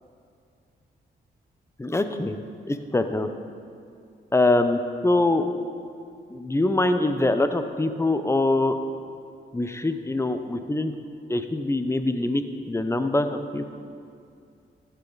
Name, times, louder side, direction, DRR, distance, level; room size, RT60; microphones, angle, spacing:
voice 1, 1.8-2.4 2.7-3.3 4.3-5.5 6.3-8.8 9.5-10.9 11.3-12.4 12.7-13.6, left 2 dB, 15° left, 8 dB, 0.7 m, -23 dB
12.0 x 8.3 x 4.0 m, 2.4 s
supercardioid pair, 50°, 21 cm